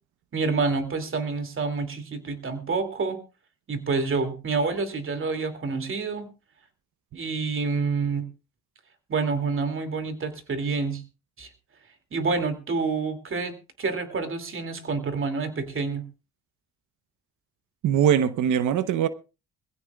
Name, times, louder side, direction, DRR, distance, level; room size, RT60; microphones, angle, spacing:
voice 1, 0.3-3.2 3.7-6.3 7.1-8.2 9.1-11.0 11.4-11.5 12.1-13.5 13.8-16.0, right 4 dB, 45° right, 2.6 m, -28 dB
voice 2, 17.8-19.1, right 9 dB, 80° right, 1.0 m, -21 dB
22.5 x 15.5 x 2.4 m
cardioid pair, 90°, 30 cm